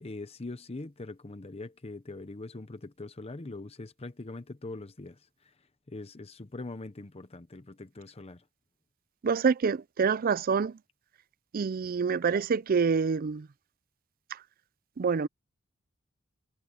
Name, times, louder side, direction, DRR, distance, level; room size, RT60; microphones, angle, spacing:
voice 1, 0.0-5.5 5.9-8.4, left 2 dB, 30° left, 0.7 m, -42 dB
voice 2, 9.2-10.7 11.5-13.4 15.0-15.3, right 5 dB, 45° right, 0.4 m, -26 dB
head